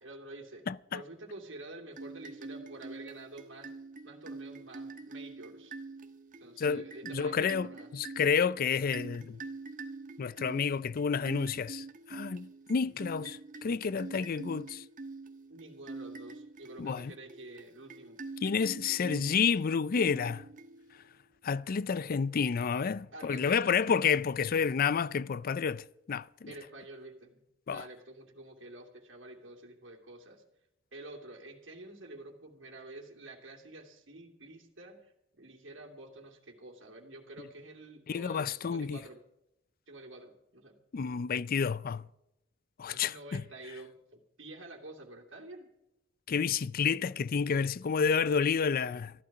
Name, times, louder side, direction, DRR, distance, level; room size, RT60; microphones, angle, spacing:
voice 1, 0.0-0.6 0.9-3.7 4.0-5.7 6.4-7.9 12.9-13.0 15.5-18.2 18.9-19.2 23.1-24.1 26.5-27.4 27.7-30.4 30.9-35.1 35.4-39.2 39.9-40.8 42.9-45.7, right 2 dB, 70° right, 2.6 m, -49 dB
voice 2, 0.7-1.0 6.6-9.4 10.2-14.8 16.8-17.1 18.4-20.4 21.4-26.5 27.7-27.9 38.1-39.0 40.9-42.0 42.8-43.4 46.3-49.1, left 6 dB, 45° left, 0.4 m, -30 dB
sound 1, 1.9-21.1, right 3 dB, 40° right, 1.3 m, -45 dB
14.5 x 12.0 x 6.0 m
head